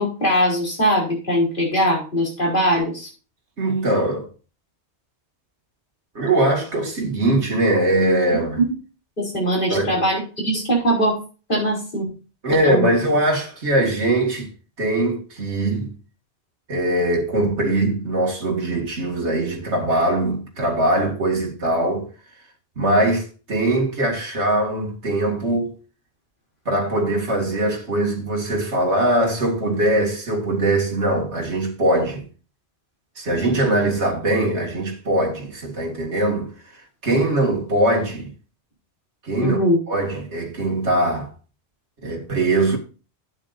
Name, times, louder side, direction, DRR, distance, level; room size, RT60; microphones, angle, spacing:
voice 1, 0.0-3.1 8.6-8.7 9.2-11.2 11.5-12.1 12.6-12.9 39.4-39.8, equal, 50° left, 4.5 m, -21 dB
voice 2, 3.6-4.3 6.1-8.6 9.7-10.0 12.4-14.5 14.8-15.9 16.7-22.1 22.8-25.7 26.7-32.3 33.2-36.5 37.0-38.3 39.2-39.6 39.9-41.3 42.0-42.8, right 1 dB, 85° right, 2.5 m, -21 dB
12.0 x 8.9 x 2.6 m
omnidirectional pair, 1.1 m